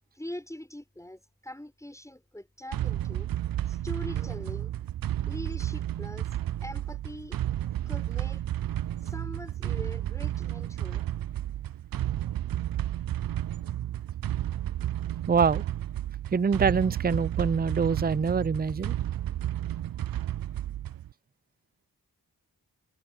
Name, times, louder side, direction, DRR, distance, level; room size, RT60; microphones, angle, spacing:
voice 1, 0.1-3.3 3.7-4.7 5.3-7.4 7.9-8.4 9.0-11.1, left 1 dB, 10° left, 6.5 m, -42 dB
sound 1, 2.7-21.1, right 12 dB, 70° right, 0.5 m, -32 dB
voice 2, 15.3-15.6 16.3-18.9, right 5 dB, 25° right, 0.6 m, -25 dB
cardioid pair, 55°, 37 cm